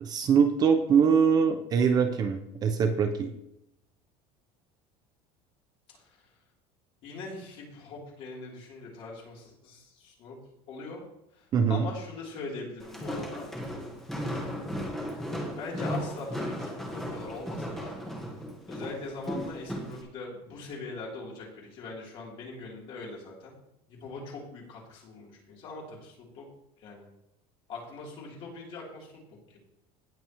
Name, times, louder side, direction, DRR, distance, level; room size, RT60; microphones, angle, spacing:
voice 1, 0.0-3.3 11.5-11.9, right 6 dB, 30° right, 6 dB, 0.7 m, -23 dB
voice 2, 7.0-10.4 10.7-11.0 11.4-13.5 15.1-15.2 15.5-18.0 18.7-23.5 23.9-26.5 26.8-27.1 27.7-29.1 29.5-29.6, left 3 dB, 45° left, -2 dB, 3.3 m, -41 dB
Walk footsteps, 12.8-20.0, equal, 5° left, 1.5 m, -36 dB
18.0 x 6.9 x 3.1 m, 0.84 s
cardioid pair, 170°, 13 cm